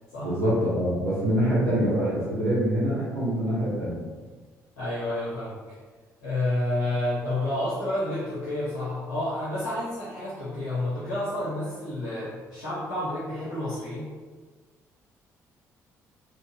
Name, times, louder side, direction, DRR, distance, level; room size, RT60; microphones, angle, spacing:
voice 1, 0.2-4.1, equal, 80° right, -7 dB, 0.6 m, -25 dB
voice 2, 4.8-5.8 6.2-14.1, left 1 dB, 85° left, -10 dB, 0.8 m, -30 dB
3.0 x 2.2 x 3.1 m, 1.4 s
figure-of-eight pair, 45°, 9 cm